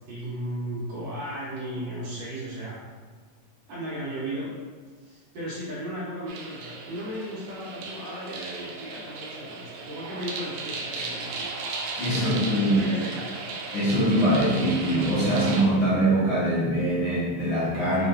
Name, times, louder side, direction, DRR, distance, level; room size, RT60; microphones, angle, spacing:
voice 1, 0.1-2.8 3.7-4.5 5.0-11.5 12.1-13.5, right 1 dB, 60° right, -9 dB, 2.0 m, -35 dB
sound 1, 6.3-15.6, right 3 dB, 80° right, 1.9 m, -36 dB
voice 2, 12.0-12.8 13.7-18.1, right 1 dB, 55° left, -10 dB, 1.4 m, -23 dB
5.3 x 3.6 x 2.6 m, 1.5 s
omnidirectional pair, 3.7 m